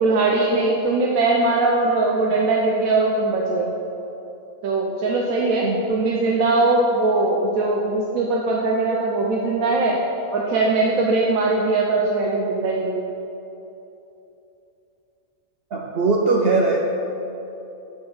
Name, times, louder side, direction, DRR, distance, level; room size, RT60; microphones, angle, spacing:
voice 1, 0.0-3.7 4.6-10.0 10.3-13.0, right 3 dB, 75° right, -2 dB, 1.1 m, -20 dB
voice 2, 15.7-16.8, right 3 dB, 60° right, 0 dB, 0.7 m, -20 dB
9.3 x 4.5 x 4.7 m, 2.9 s
omnidirectional pair, 1.5 m